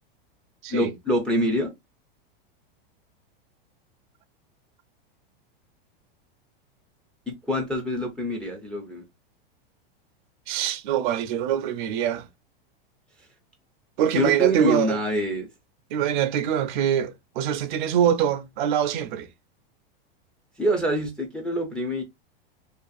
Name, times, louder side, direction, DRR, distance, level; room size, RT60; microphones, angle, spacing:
voice 1, 0.7-1.7 7.3-9.0 14.1-15.5 20.6-22.0, equal, 5° left, 0.3 m, -25 dB
voice 2, 10.5-12.3 14.0-15.0 15.9-19.3, right 9 dB, 55° right, 0.5 m, -24 dB
2.6 x 2.4 x 2.3 m
supercardioid pair, 135°, 29 cm